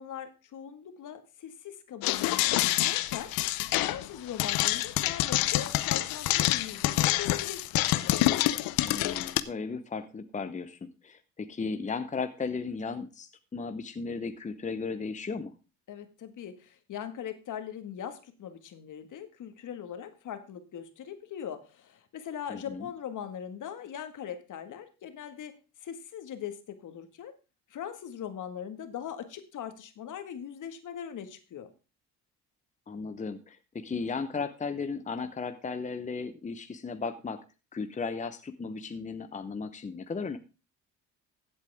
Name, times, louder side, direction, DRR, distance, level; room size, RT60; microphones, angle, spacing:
voice 1, 0.0-3.3 3.8-7.9 15.9-25.5 25.8-27.3 27.7-31.7, left 9 dB, 60° left, 9 dB, 1.9 m, -40 dB
sound 1, 2.0-9.4, left 16 dB, 85° left, 0.8 m, -27 dB
voice 2, 8.8-15.5 22.5-22.9 32.9-37.4 37.7-40.4, left 4 dB, 20° left, 9 dB, 0.9 m, -35 dB
15.0 x 8.2 x 3.5 m, 0.31 s
cardioid pair, 100°, 34 cm